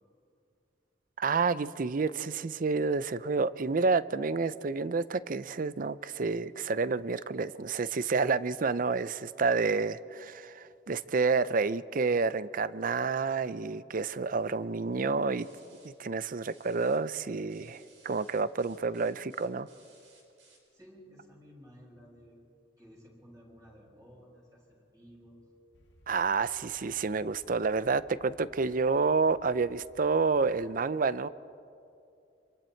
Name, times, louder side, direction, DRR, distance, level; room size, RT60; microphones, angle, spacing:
voice 1, 1.2-15.5 15.8-19.7 26.1-31.3, right 4 dB, 50° right, 16 dB, 0.5 m, -29 dB
sound 1, 15.4-15.9 16.4-17.0 17.5-20.7, right 4 dB, 80° right, 5.1 m, -61 dB
voice 2, 20.7-22.4 22.8-25.5, equal, 20° right, -3 dB, 6.6 m, -55 dB
sound 2, 25.7-30.7, left 1 dB, 85° left, 1.9 m, -60 dB
29.0 x 26.5 x 4.5 m, 2.5 s
head